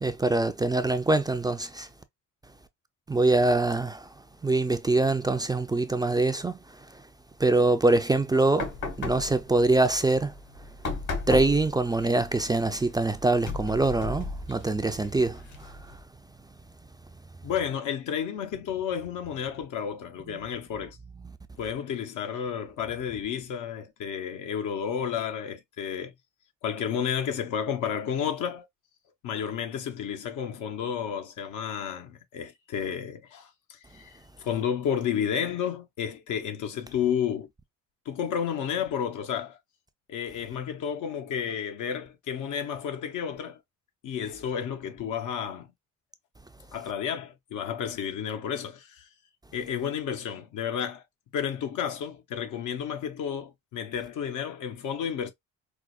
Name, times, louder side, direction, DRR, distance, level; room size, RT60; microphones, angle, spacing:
voice 1, 0.0-1.9 3.1-4.1 4.4-7.0 7.4-8.7 9.0-10.3 11.3-16.0, right 2 dB, 15° right, 0.3 m, -24 dB
sound 1, 8.5-16.0, left 3 dB, 65° left, 1.3 m, -37 dB
voice 2, 17.4-21.0 21.6-26.1 26.6-28.7 29.2-34.1 34.4-37.5 38.1-39.6 40.1-43.6 44.0-45.7 46.7-49.1 49.5-51.0 51.3-55.3, left 8 dB, 80° left, 0.8 m, -31 dB
4.7 x 2.1 x 2.3 m
cardioid pair, 90°, 30 cm